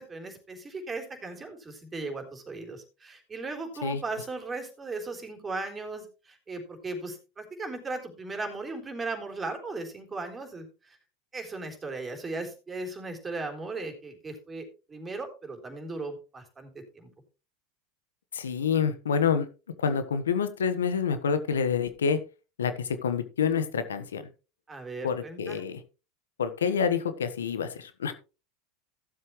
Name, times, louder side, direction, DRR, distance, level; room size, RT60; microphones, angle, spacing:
voice 1, 0.0-11.0 11.3-17.1 24.7-25.6, right 3 dB, 20° right, 4 dB, 3.9 m, -37 dB
voice 2, 18.3-19.5 19.8-22.2 22.6-24.2 25.0-25.8 26.4-28.1, left 6 dB, 90° left, 11 dB, 1.2 m, -27 dB
15.5 x 7.7 x 3.2 m, 0.32 s
hypercardioid pair, 95°, 0 cm